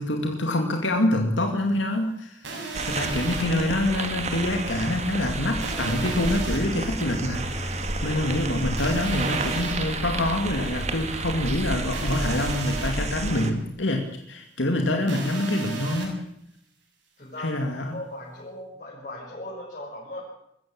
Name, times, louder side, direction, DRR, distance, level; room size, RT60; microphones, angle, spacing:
voice 1, 0.0-2.5 2.8-16.2 17.4-18.0, left 1 dB, 85° left, 4 dB, 2.3 m, -26 dB
sound 1, 2.4-3.4 5.6-6.6 8.8-9.7 11.9-12.9 15.1-16.1, right 4 dB, 75° right, 6.6 m, -35 dB
sound 2, 2.7-13.5, right 2 dB, 35° right, 2.0 m, -30 dB
voice 2, 7.8-8.4 17.2-20.2, left 1 dB, 40° left, -7 dB, 6.6 m, -39 dB
22.5 x 15.0 x 8.8 m, 0.77 s
head